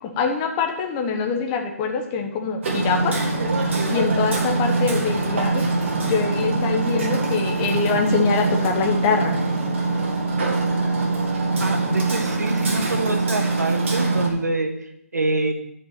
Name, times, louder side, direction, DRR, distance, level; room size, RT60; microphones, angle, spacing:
voice 1, 0.0-3.2 3.9-5.6 6.0-9.4, left 5 dB, 20° left, 4 dB, 1.0 m, -24 dB
Hammer, 2.6-14.3, right 3 dB, 50° right, 2.2 m, -23 dB
voice 2, 11.6-15.5, right 2 dB, 90° right, 6 dB, 1.5 m, -26 dB
11.5 x 5.4 x 5.7 m, 0.77 s
hypercardioid pair, 160°, 9 cm